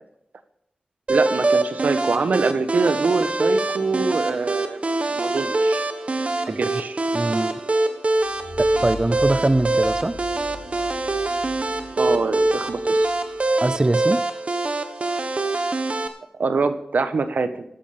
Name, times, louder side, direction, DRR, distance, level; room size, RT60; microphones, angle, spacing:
sound 1, 1.1-16.1, right 2 dB, 45° right, 1.3 m, -24 dB
voice 1, 1.1-5.8 6.6-7.0 12.0-13.1 16.4-17.6, right 4 dB, 75° right, 10 dB, 1.2 m, -24 dB
voice 2, 7.1-7.6 8.6-10.2 13.6-14.2, right 2 dB, 25° right, 14 dB, 0.4 m, -22 dB
sound 2, 8.2-14.1, left 1 dB, 60° left, 6.1 m, -40 dB
15.0 x 11.5 x 3.5 m, 0.79 s
cardioid pair, 50°, 3 cm